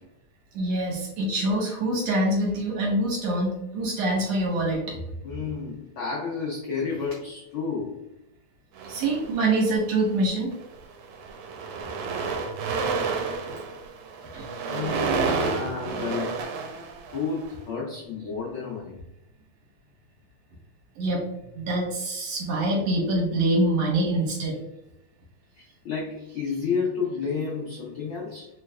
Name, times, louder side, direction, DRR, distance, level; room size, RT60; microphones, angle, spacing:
voice 1, 0.5-5.0 8.9-10.5 14.3-14.5 21.0-21.3 21.5-24.6, right 1 dB, 65° right, -1 dB, 2.0 m, -25 dB
voice 2, 5.2-8.0 14.6-16.5 17.1-19.0 25.5-28.5, left 5 dB, 90° left, -4 dB, 1.1 m, -31 dB
sound 1, 8.8-9.8 10.5-10.7 11.0-17.5, right 4 dB, 90° right, 2.0 m, -30 dB
4.4 x 3.1 x 2.3 m, 0.84 s
omnidirectional pair, 3.3 m